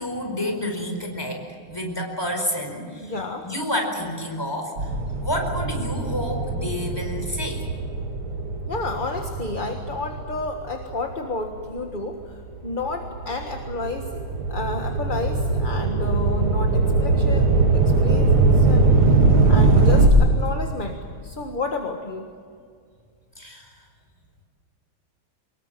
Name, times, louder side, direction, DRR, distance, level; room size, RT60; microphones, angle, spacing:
voice 1, 0.0-3.1 3.4-4.9 5.2-7.7 23.4-23.7, left 1 dB, 10° left, 2 dB, 4.7 m, -29 dB
voice 2, 3.0-3.5 8.7-14.2 14.5-18.9 19.5-22.3, left 3 dB, 25° left, 3 dB, 1.5 m, -31 dB
sound 1, 4.8-11.5 12.1-20.1, right 3 dB, 85° right, 3.6 m, -21 dB
25.0 x 21.0 x 7.5 m, 2.1 s
omnidirectional pair, 2.3 m